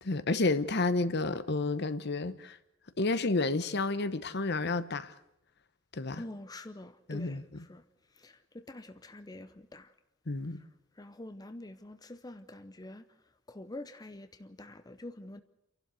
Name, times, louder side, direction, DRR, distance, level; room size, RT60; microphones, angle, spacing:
voice 1, 0.0-2.6 3.0-5.1 5.9-6.2 7.1-7.7 10.3-10.6, left 3 dB, 55° left, 0.9 m, -30 dB
voice 2, 6.2-7.4 7.7-7.8 8.2-9.9 11.0-13.1 13.5-15.4, left 1 dB, 20° left, 0.7 m, -46 dB
29.0 x 12.0 x 8.2 m
head